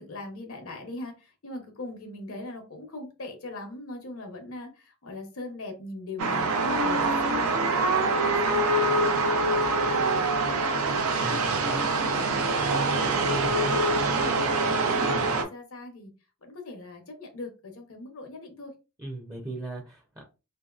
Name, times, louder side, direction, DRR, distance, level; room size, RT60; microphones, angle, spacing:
voice 1, 0.0-10.8 11.0-13.4 13.8-16.1 16.4-18.7, left 2 dB, 75° left, 4 dB, 0.8 m, -41 dB
sound 1, 6.2-15.4, right 3 dB, 85° right, 0.6 m, -24 dB
voice 2, 11.2-11.9 13.4-13.7 15.0-15.4 19.0-20.2, right 2 dB, 15° right, -1 dB, 0.5 m, -38 dB
2.9 x 2.7 x 2.4 m, 0.30 s
head